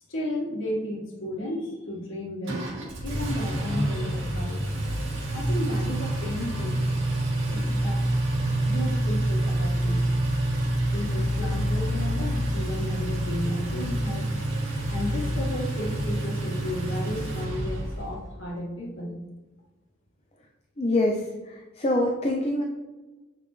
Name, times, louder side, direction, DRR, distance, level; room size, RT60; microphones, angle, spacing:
voice 1, 0.1-2.6 3.0-4.6 5.3-6.8 7.5-8.0 8.4-10.1 10.9-14.3 14.9-19.2, left 1 dB, 80° left, -3 dB, 1.7 m, -33 dB
Engine, 2.5-18.2, right 1 dB, 90° right, 1.8 m, -27 dB
voice 2, 20.8-22.6, left 1 dB, 30° left, 1 dB, 0.6 m, -25 dB
8.1 x 5.4 x 3.3 m, 1.2 s
head